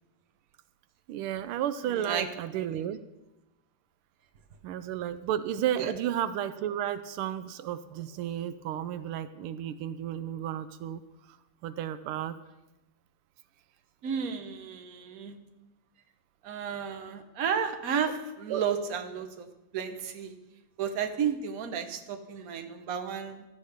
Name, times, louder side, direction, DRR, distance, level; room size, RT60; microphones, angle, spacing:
voice 1, 1.1-3.0 4.6-11.0 11.3-11.4 11.6-12.4 18.5-18.6, right 10 dB, 85° right, 12 dB, 1.5 m, -33 dB
voice 2, 1.9-2.3 2.5-2.7 5.8-5.9 14.0-15.4 16.4-19.5 19.7-20.3 20.8-23.4, right 7 dB, 50° right, 6 dB, 1.3 m, -32 dB
17.0 x 13.0 x 3.5 m, 0.98 s
omnidirectional pair, 2.3 m